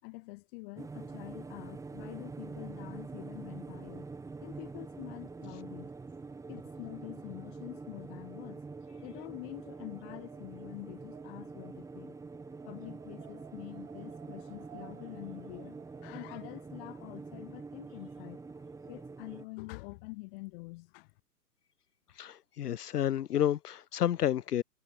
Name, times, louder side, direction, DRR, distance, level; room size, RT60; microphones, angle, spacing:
voice 1, 0.0-4.1 4.4-5.9 6.5-8.6 9.0-12.2 12.6-21.1, left 25 dB, 35° left, 4.9 m, -46 dB
sound 1, 0.8-19.4, right 4 dB, 5° right, 2.4 m, -45 dB
Wind, 8.7-17.2, right 15 dB, 45° right, 7.0 m, -58 dB
voice 2, 22.2-24.6, left 11 dB, 75° left, 0.6 m, -30 dB
figure-of-eight pair, 120°, 47 cm